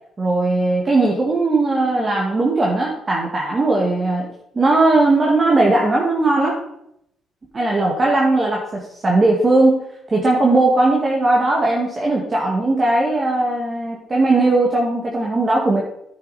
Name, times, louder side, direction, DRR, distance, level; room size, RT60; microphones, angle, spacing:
voice 1, 0.2-6.6 7.5-9.8 10.1-15.8, right 2 dB, 30° right, -3 dB, 1.9 m, -18 dB
10.0 x 6.6 x 4.2 m, 0.78 s
cardioid pair, 90°, 0 cm